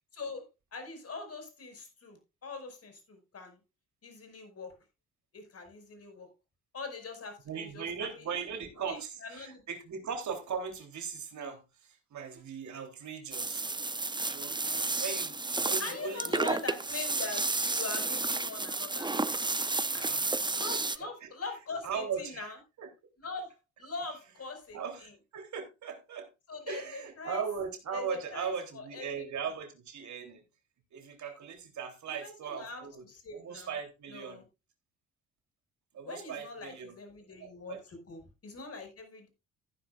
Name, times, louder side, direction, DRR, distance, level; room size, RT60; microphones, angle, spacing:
voice 1, 0.1-0.5 0.7-3.6 4.0-4.8 5.3-6.3 6.7-8.2 8.8-9.6 15.8-19.1 19.9-20.1 20.5-22.6 23.2-23.5 23.8-25.1 26.5-27.4 27.9-29.3 32.2-33.8 34.1-34.5 36.0-39.3, left 3 dB, 45° left, 5.4 m, -42 dB
voice 2, 7.5-13.7 14.3-16.6 19.9-20.3 20.7-20.8 21.2-21.3 21.8-22.9 24.7-26.3 26.7-30.4 30.9-33.1 33.3-34.4 35.9-36.9 37.4-37.8, right 6 dB, 55° right, 3.4 m, -39 dB
sound 1, 13.3-21.0, right 3 dB, 15° right, 0.9 m, -32 dB
14.5 x 10.0 x 2.4 m
hypercardioid pair, 50°, 33 cm